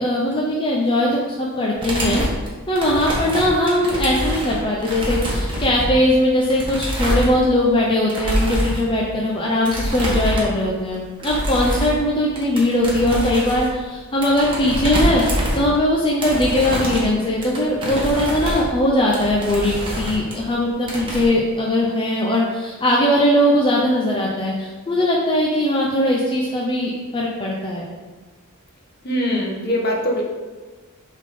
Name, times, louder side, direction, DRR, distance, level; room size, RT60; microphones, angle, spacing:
voice 1, 0.0-2.2 2.7-27.9, left 1 dB, 25° left, -3 dB, 0.7 m, -20 dB
sound 1, 1.8-7.7 8.1-8.8 9.6-10.7 10.9-12.1 12.4-15.9 16.2-20.5 20.8-21.2, equal, 25° right, 1.6 m, -25 dB
voice 2, 29.0-30.2, equal, 50° left, -1 dB, 1.4 m, -22 dB
7.0 x 3.8 x 5.1 m, 1.3 s
head